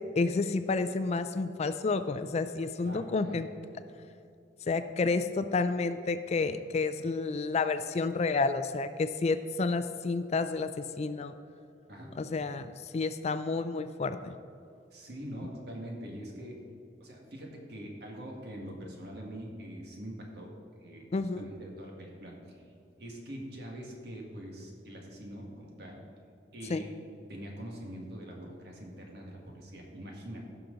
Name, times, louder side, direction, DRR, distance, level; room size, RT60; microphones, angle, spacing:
voice 1, 0.2-3.5 4.7-11.3 12.2-14.4 21.1-21.4 26.7-26.8, left 3 dB, 35° left, 11 dB, 0.4 m, -30 dB
voice 2, 2.8-3.4 11.9-12.1 14.9-16.6 17.0-20.5 20.8-21.1 21.4-22.6 23.0-26.0 26.5-26.9 27.3-30.4, equal, 65° right, 0 dB, 1.9 m, -43 dB
15.5 x 6.0 x 3.9 m, 2.5 s
head